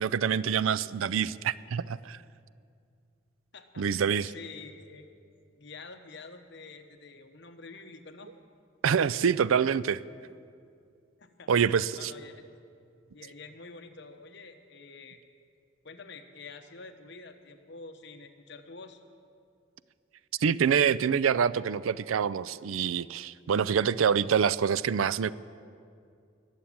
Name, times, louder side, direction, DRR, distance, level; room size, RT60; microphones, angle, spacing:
voice 1, 0.0-2.2 3.8-4.3 8.8-10.0 11.5-12.1 20.4-25.3, right 7 dB, 85° right, 18 dB, 0.4 m, -26 dB
voice 2, 3.5-5.1 5.6-8.3 11.2-11.5 12.0-12.5 13.1-15.2 15.8-19.0, left 4 dB, 60° left, 7 dB, 1.0 m, -47 dB
20.5 x 7.3 x 8.7 m, 2.4 s
head